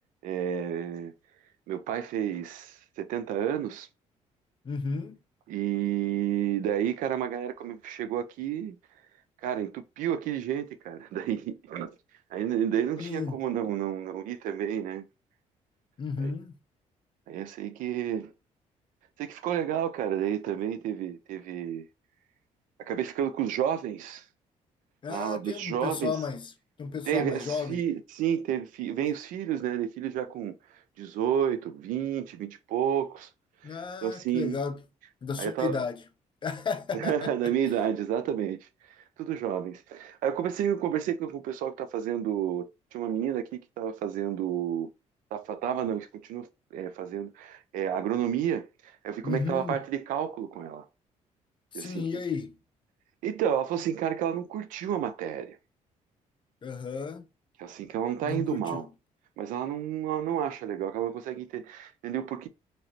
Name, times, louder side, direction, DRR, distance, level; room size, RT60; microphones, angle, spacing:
voice 1, 0.2-1.1 1.7-3.9 5.5-8.8 9.4-11.9 12.3-15.0 17.3-18.3 19.2-21.9 22.8-24.2 25.1-26.1 27.1-30.5 31.0-33.3 33.7-34.6 35.4-35.8 36.9-38.6 39.2-42.7 42.9-44.9 45.3-46.5 46.7-50.8 51.7-52.1 53.2-55.6 57.6-58.9 59.4-62.5, right 9 dB, 90° right, 0.5 m, -30 dB
voice 2, 4.6-5.2 13.0-13.4 16.0-16.6 25.0-26.5 26.8-27.8 33.6-34.8 35.2-36.0 36.4-37.4 49.2-49.8 51.7-52.6 56.6-57.3 58.2-58.8, left 5 dB, 40° left, 0.6 m, -33 dB
3.1 x 2.9 x 2.7 m
cardioid pair, 100°, 13 cm